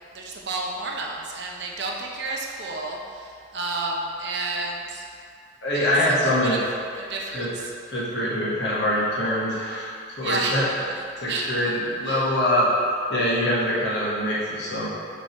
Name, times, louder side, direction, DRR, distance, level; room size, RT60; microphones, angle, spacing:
voice 1, 0.1-5.0 5.7-6.6 7.0-7.7 10.2-11.0 11.3-11.8 12.0-12.3, right 3 dB, 60° right, -1 dB, 0.7 m, -31 dB
voice 2, 5.6-6.6 7.3-7.5 7.9-10.7 11.2-12.7 13.1-14.9, equal, 65° left, -7 dB, 1.4 m, -24 dB
6.2 x 3.5 x 4.5 m, 2.3 s
head